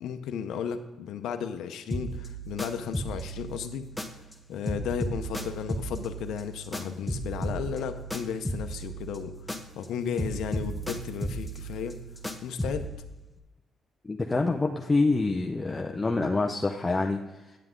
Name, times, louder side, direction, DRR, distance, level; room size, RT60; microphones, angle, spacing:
voice 1, 0.0-3.8 4.5-9.3 9.8-12.0 12.4-12.8, left 8 dB, 80° left, 7 dB, 0.7 m, -34 dB
sound 1, 1.9-4.4 4.7-9.9 10.2-13.0, right 1 dB, 5° left, 1.0 m, -35 dB
voice 2, 14.0-17.6, left 3 dB, 20° left, 2 dB, 0.6 m, -26 dB
9.1 x 7.7 x 3.7 m, 1.1 s
cardioid pair, 90°, 0 cm